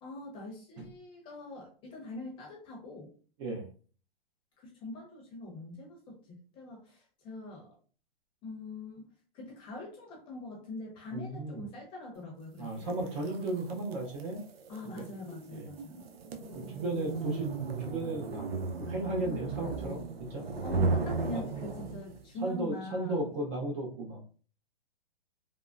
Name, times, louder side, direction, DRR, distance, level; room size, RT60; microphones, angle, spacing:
voice 1, 0.0-3.1 4.6-7.8 8.4-9.0 9.3-12.9 14.7-16.1 20.6-23.4, left 2 dB, 15° left, -1 dB, 0.7 m, -43 dB
voice 2, 11.1-11.6 12.6-14.4 14.9-15.1 15.5-15.7 16.5-17.5 17.8-18.5 18.8-20.4 21.3-21.4 22.4-24.3, right 2 dB, 30° right, 0 dB, 0.6 m, -35 dB
sound 1, 12.9-22.3, right 3 dB, 85° right, 0.7 m, -35 dB
3.5 x 2.0 x 2.5 m, 0.41 s
hypercardioid pair, 155°, 29 cm